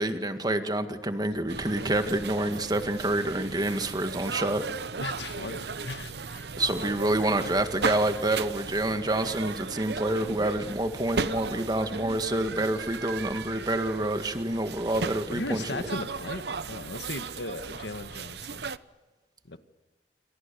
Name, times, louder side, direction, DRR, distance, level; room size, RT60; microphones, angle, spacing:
voice 1, 0.0-4.6 6.6-15.8, right 1 dB, 25° right, 8 dB, 1.9 m, -28 dB
sound 1, 1.5-18.8, right 4 dB, 70° right, 0.9 m, -36 dB
voice 2, 5.0-6.5 15.3-18.7 19.5-19.6, left 2 dB, 85° left, 10 dB, 1.8 m, -37 dB
28.0 x 25.5 x 7.1 m, 1.3 s
head